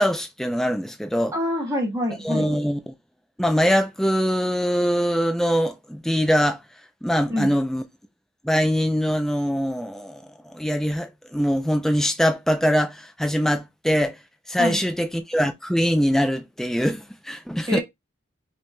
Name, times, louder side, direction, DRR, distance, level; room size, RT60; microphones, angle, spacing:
voice 1, 0.0-1.3 2.2-2.9 3.4-6.6 7.0-7.8 8.4-14.2 14.5-17.8, equal, ahead, 0.4 m, -23 dB
voice 2, 1.3-2.5 7.3-7.5 14.6-14.8 17.7-17.8, equal, 15° right, 0.8 m, -26 dB
4.9 x 3.0 x 2.2 m
head